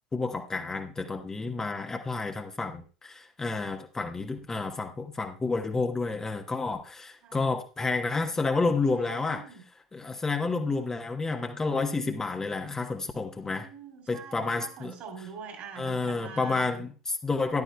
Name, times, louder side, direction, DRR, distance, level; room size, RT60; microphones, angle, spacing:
voice 1, 0.1-9.4 9.9-13.7 14.1-14.9 15.8-17.6, left 3 dB, 15° left, 4 dB, 1.1 m, -30 dB
voice 2, 8.9-9.6 13.5-16.8, right 6 dB, 45° right, 5 dB, 3.0 m, -44 dB
14.5 x 10.5 x 2.3 m, 0.36 s
figure-of-eight pair, 70°, 3 cm